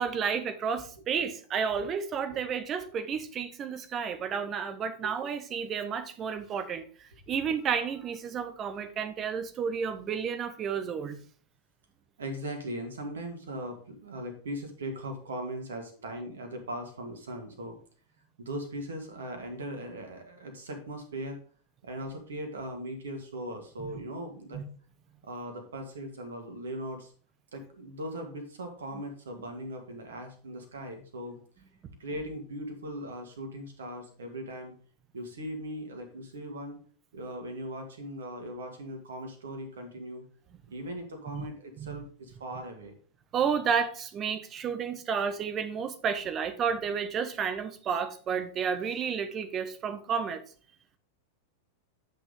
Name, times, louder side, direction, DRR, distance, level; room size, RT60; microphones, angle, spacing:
voice 1, 0.0-11.2 23.8-23.9 24.5-24.7 41.3-41.5 41.8-42.0 43.3-50.4, right 6 dB, 30° right, 1.0 m, -31 dB
voice 2, 12.2-17.8 18.4-21.4 21.8-24.6 25.2-27.1 27.5-31.4 32.0-34.7 35.1-36.8 37.1-40.2 40.7-42.9, right 1 dB, 65° right, 2.2 m, -39 dB
10.0 x 6.4 x 3.6 m
figure-of-eight pair, 90°, 0 cm